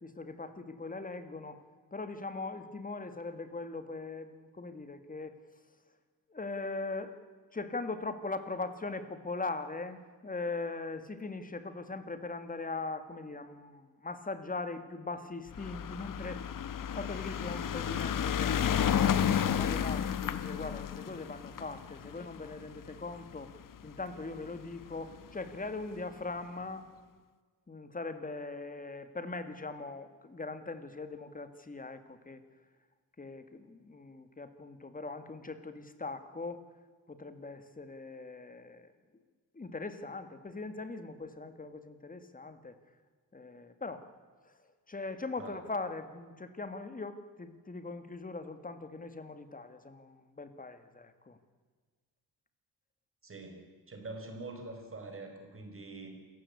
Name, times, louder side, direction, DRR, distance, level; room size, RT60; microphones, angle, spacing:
voice 1, 0.0-1.6 1.9-5.4 6.3-7.2 7.5-16.4 16.8-23.5 23.8-26.9 27.7-32.4 33.2-36.6 37.1-38.9 39.5-42.8 43.3-44.1 44.4-44.5 44.9-51.4, left 3 dB, 20° left, 10 dB, 2.0 m, -40 dB
sound 1, 15.5-24.0 24.8-24.9 25.1-25.2 25.5-25.6, left 9 dB, 60° left, 1.1 m, -32 dB
voice 2, 53.2-56.1, right 2 dB, 35° right, 4 dB, 5.1 m, -45 dB
27.5 x 15.5 x 8.5 m, 1.5 s
wide cardioid pair, 135°, 37 cm